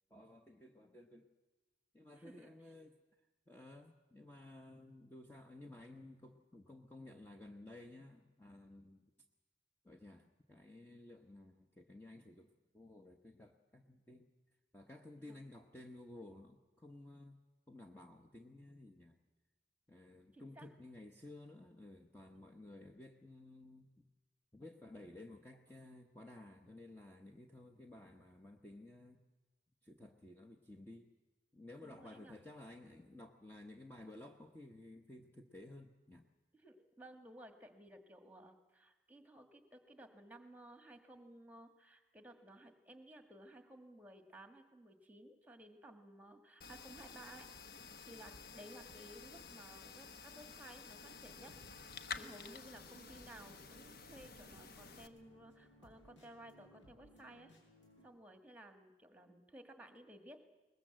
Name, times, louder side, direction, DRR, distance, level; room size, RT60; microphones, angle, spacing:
voice 1, 0.1-1.3 1.9-2.9 3.5-9.0 9.8-14.3 14.7-17.4 17.7-19.2 19.9-24.1 24.5-29.2 29.8-31.1 31.5-36.3, left 1 dB, 10° left, 2 dB, 0.9 m, -55 dB
voice 2, 2.1-2.7 15.1-15.5 20.3-20.7 31.8-32.3 36.5-47.5 48.0-51.5 52.2-57.5 58.0-60.4, right 1 dB, 10° right, 6 dB, 1.6 m, -57 dB
sound 1, 46.6-55.1, left 5 dB, 50° left, 1.0 m, -51 dB
sound 2, 50.9-58.1, equal, 70° left, 6.7 m, -64 dB
21.5 x 20.0 x 7.7 m, 1.2 s
head